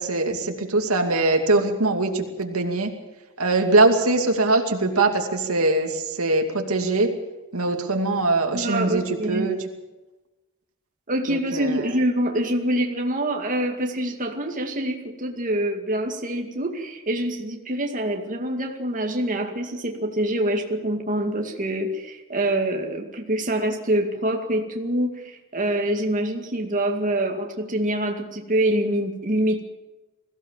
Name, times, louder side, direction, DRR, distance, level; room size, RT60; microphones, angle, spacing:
voice 1, 0.0-2.9 3.4-7.1 7.5-9.6 11.3-11.9, right 2 dB, 80° right, 4 dB, 2.6 m, -22 dB
voice 2, 8.5-9.5 11.1-29.6, right 1 dB, 40° right, 2 dB, 2.2 m, -25 dB
22.0 x 16.0 x 7.4 m, 1.1 s
head